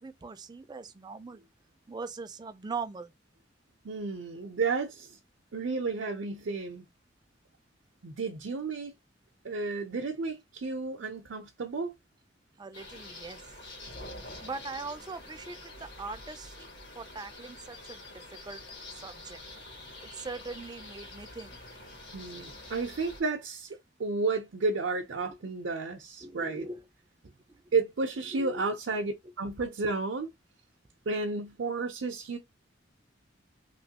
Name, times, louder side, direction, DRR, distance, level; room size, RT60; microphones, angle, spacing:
voice 1, 0.0-1.4 1.9-3.1 12.6-13.4 14.4-16.6 17.0-18.6 18.9-19.4 20.0-21.6 25.2-25.4 26.2-26.8 27.5-27.6 28.3-28.6, right 4 dB, 20° right, 0.4 m, -41 dB
voice 2, 3.8-5.2 5.5-6.9 8.0-8.9 9.4-11.9 22.1-23.7 24.0-26.7 27.7-30.3 31.1-32.4, right 3 dB, 70° right, 0.6 m, -32 dB
sound 1, 12.7-23.2, left 2 dB, 65° left, 1.3 m, -46 dB
3.1 x 2.9 x 2.8 m
head